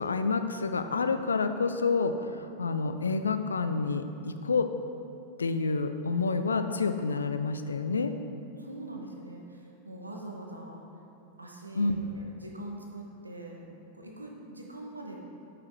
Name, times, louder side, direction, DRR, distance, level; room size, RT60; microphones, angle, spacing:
voice 1, 0.0-4.7 5.4-8.1 11.8-12.0, left 4 dB, 75° left, 9 dB, 0.4 m, -28 dB
voice 2, 8.6-10.8 11.4-13.6 13.9-15.2, right 2 dB, 85° right, 0 dB, 1.0 m, -43 dB
9.2 x 4.9 x 4.5 m, 2.8 s
figure-of-eight pair, 90°, 0 cm